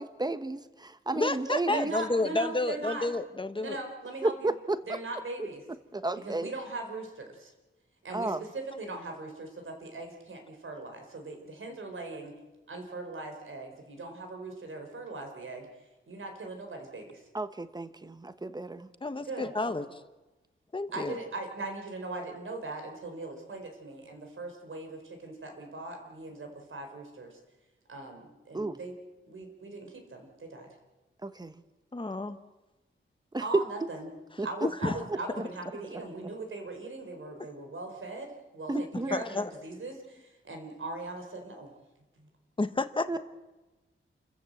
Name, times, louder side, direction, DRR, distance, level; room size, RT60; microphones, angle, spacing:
voice 1, 0.0-1.9 4.2-5.0 5.9-6.5 8.1-8.4 17.3-18.9 28.5-28.8 31.2-31.5 33.3-33.6 34.4-34.5 38.7-39.2 43.1-43.2, right 2 dB, 20° right, 11 dB, 1.1 m, -32 dB
voice 2, 1.1-3.8 19.0-20.0 20.7-21.2 31.9-32.4 34.6-34.9 38.9-39.5 42.6-43.2, left 2 dB, 25° left, 10 dB, 1.2 m, -30 dB
voice 3, 1.7-3.1 3.6-4.5 4.9-5.6 6.2-7.5 8.0-12.3 12.7-15.7 16.1-17.2 19.2-19.7 20.9-27.4 27.9-28.9 29.3-30.7 33.4-34.1 34.4-41.7 42.2-42.3, right 2 dB, 70° right, 4 dB, 4.8 m, -40 dB
29.0 x 14.5 x 7.9 m, 1.1 s
wide cardioid pair, 145°, 21 cm